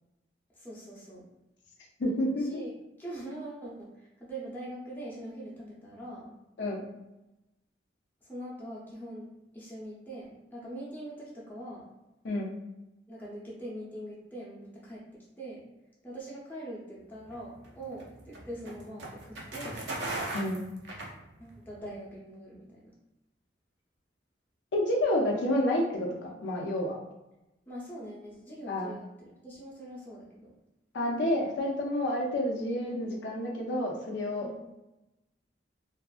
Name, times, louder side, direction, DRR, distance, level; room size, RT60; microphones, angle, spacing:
voice 1, 0.5-1.3 2.4-6.4 8.2-9.3 9.5-11.9 13.1-15.7 16.0-19.9 21.4-22.9 27.7-30.5 34.4-34.6, right 1 dB, 10° left, -6 dB, 0.6 m, -43 dB
voice 2, 2.0-2.6 6.6-6.9 12.2-12.5 20.3-20.6 24.7-27.0 28.7-28.9 30.9-34.5, left 1 dB, 75° left, 0 dB, 0.5 m, -29 dB
sound 1, 17.3-21.7, right 2 dB, 70° right, 0.5 m, -38 dB
2.5 x 2.4 x 2.3 m, 0.95 s
head